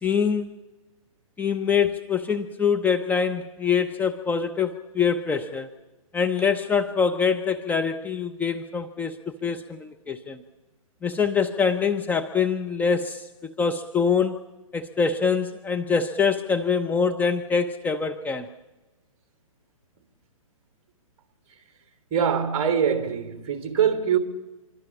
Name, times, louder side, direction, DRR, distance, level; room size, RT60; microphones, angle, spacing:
voice 1, 0.0-0.5 1.4-5.7 6.1-10.4 11.0-14.4 14.7-18.5, left 6 dB, 10° left, 0.9 m, -24 dB
voice 2, 22.1-24.2, right 8 dB, 35° right, 3.2 m, -23 dB
26.5 x 23.0 x 7.3 m
hypercardioid pair, 135°, 18 cm